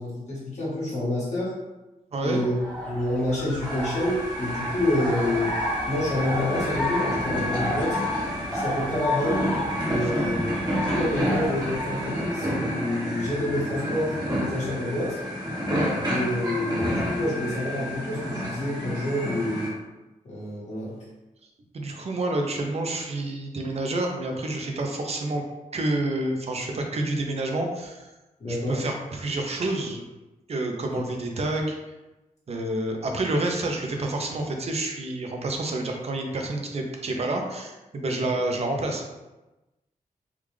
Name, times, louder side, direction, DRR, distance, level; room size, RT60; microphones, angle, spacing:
voice 1, 0.0-1.5 2.2-2.5 2.8-8.0 8.5-9.4 9.8-10.5 10.9-15.2 16.1-19.8 20.2-21.0 28.4-28.8 30.9-31.0, left 1 dB, 50° left, -7 dB, 1.3 m, -28 dB
voice 2, 2.1-2.4 9.9-10.4 21.7-25.4 25.7-28.1 28.5-30.0 30.5-31.8 32.5-39.0, right 2 dB, 45° right, 2 dB, 0.5 m, -28 dB
sound 1, 2.4-12.1, left 1 dB, 5° left, 0.9 m, -33 dB
sound 2, 3.6-19.7, equal, 30° right, 0.9 m, -29 dB
3.5 x 2.3 x 3.1 m, 1.1 s
wide cardioid pair, 135°, 15 cm